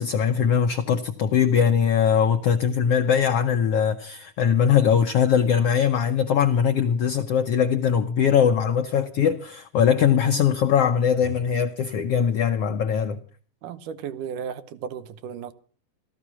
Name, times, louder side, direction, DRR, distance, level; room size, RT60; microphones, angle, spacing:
voice 1, 0.0-13.2, left 7 dB, 70° left, 1.5 m, -21 dB
voice 2, 13.6-15.5, right 7 dB, 80° right, 2.5 m, -34 dB
15.0 x 14.0 x 6.1 m
omnidirectional pair, 3.7 m